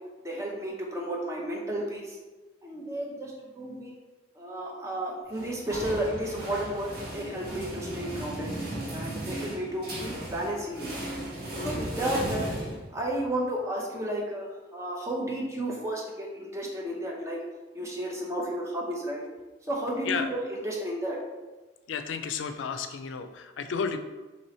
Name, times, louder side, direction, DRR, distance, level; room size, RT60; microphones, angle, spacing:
voice 1, 0.2-2.2 2.6-3.9 4.4-8.6 8.9-11.0 11.6-12.5 12.9-17.4 17.7-19.2 19.7-20.2 20.5-21.2, right 1 dB, 15° right, -2 dB, 0.6 m, -32 dB
sound 1, 5.3-13.2, right 1 dB, 55° right, 1.2 m, -36 dB
voice 2, 21.9-24.0, left 6 dB, 90° left, 8 dB, 0.4 m, -32 dB
3.0 x 2.9 x 4.2 m, 1.2 s
head